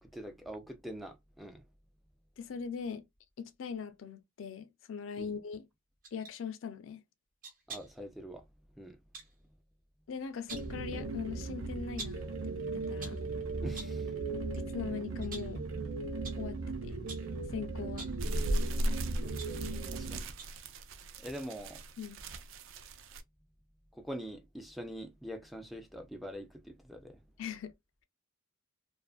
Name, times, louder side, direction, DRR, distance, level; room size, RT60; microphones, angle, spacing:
voice 1, 0.0-1.6 5.2-5.4 7.7-8.4 8.8-9.0 13.6-14.1 19.9-20.3 21.2-21.8 23.9-27.2, equal, ahead, 0.4 m, -44 dB
voice 2, 2.4-3.0 3.4-5.7 6.1-7.0 10.1-13.2 14.6-15.7 16.4-17.0 17.5-18.1 22.0-22.2 27.4-27.7, left 6 dB, 70° left, 0.4 m, -41 dB
sound 1, 6.0-6.4 7.4-8.0 9.1-9.3 10.2-10.8 12.0-12.3 12.8-13.3 13.7-14.1 14.5-14.7 15.2-15.6 16.2-16.5 17.1-17.4 17.9-18.3 19.0-20.0 20.4-20.7 21.0-21.1, right 4 dB, 45° right, 0.9 m, -47 dB
sound 2, 10.5-20.2, right 3 dB, 85° right, 0.8 m, -38 dB
sound 3, 18.2-23.2, right 1 dB, 70° right, 0.4 m, -36 dB
2.5 x 2.4 x 2.3 m
head